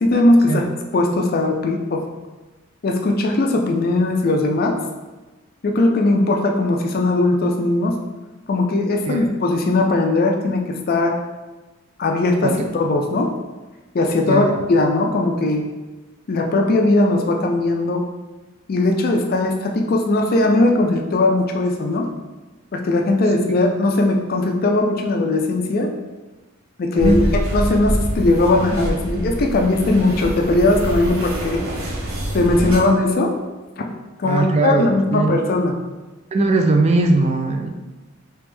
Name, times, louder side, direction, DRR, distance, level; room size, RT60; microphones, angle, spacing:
voice 1, 0.0-2.0 2.8-4.8 5.6-8.0 8.5-11.2 12.0-13.3 13.9-15.6 16.3-18.0 18.7-22.1 22.7-25.9 26.8-31.6 32.3-33.3 34.2-35.8, left 2 dB, 45° left, 3 dB, 0.4 m, -19 dB
sound 1, 27.0-32.8, equal, 90° right, 0.7 m, -25 dB
voice 2, 34.2-35.4 36.3-37.7, right 2 dB, 30° right, 5 dB, 0.3 m, -19 dB
3.4 x 3.0 x 3.3 m, 1.2 s
head